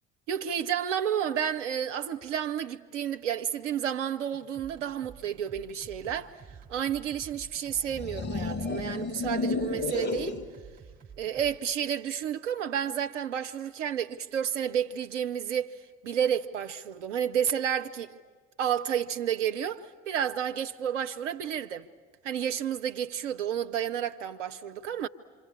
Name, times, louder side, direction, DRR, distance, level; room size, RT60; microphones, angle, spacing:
voice 1, 0.3-6.3 6.7-10.4 11.2-15.7 16.0-18.2 18.6-21.9 22.2-25.1, right 9 dB, 70° right, 1.0 m, -31 dB
sound 1, 4.3-11.6, right 6 dB, 20° right, 5.0 m, -50 dB
sound 2, 7.8-10.5, left 3 dB, 30° left, 2.3 m, -31 dB
26.5 x 25.5 x 8.7 m
figure-of-eight pair, 60°, 37 cm